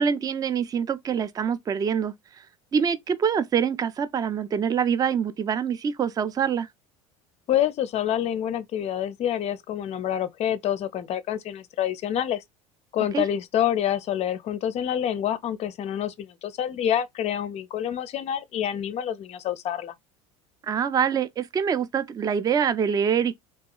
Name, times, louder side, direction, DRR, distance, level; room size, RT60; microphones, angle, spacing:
voice 1, 0.0-2.1 2.7-6.7 13.1-13.2 20.6-23.3, right 7 dB, 20° right, 0.4 m, -25 dB
voice 2, 7.5-12.4 12.9-19.9, left 10 dB, 40° left, 0.4 m, -27 dB
2.7 x 2.3 x 2.3 m
hypercardioid pair, 80°, 17 cm